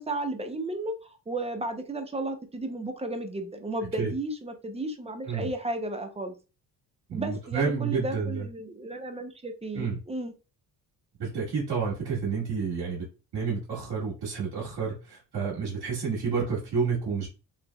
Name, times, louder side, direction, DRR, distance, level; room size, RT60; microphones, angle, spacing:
voice 1, 0.0-6.3 7.1-10.3, right 2 dB, 15° right, 6 dB, 0.6 m, -34 dB
voice 2, 7.1-8.5 9.7-10.0 11.2-13.0 13.3-17.3, right 5 dB, 60° right, -7 dB, 1.7 m, -30 dB
3.2 x 2.9 x 2.3 m, 0.32 s
cardioid pair, 75°, 43 cm